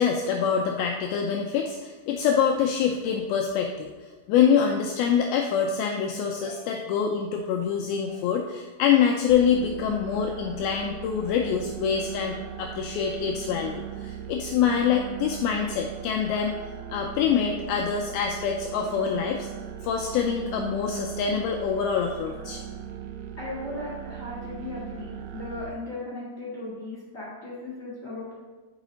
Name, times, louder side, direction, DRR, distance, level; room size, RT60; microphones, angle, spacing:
voice 1, 0.0-3.9 4.3-16.6 16.9-19.5 19.8-22.6, left 7 dB, 90° left, 2 dB, 2.1 m, -25 dB
sound 1, 9.3-25.7, right 10 dB, 80° right, 2.5 m, -39 dB
voice 2, 23.4-28.3, left 2 dB, 70° left, -8 dB, 0.7 m, -37 dB
6.3 x 4.9 x 5.0 m, 1.3 s
omnidirectional pair, 4.8 m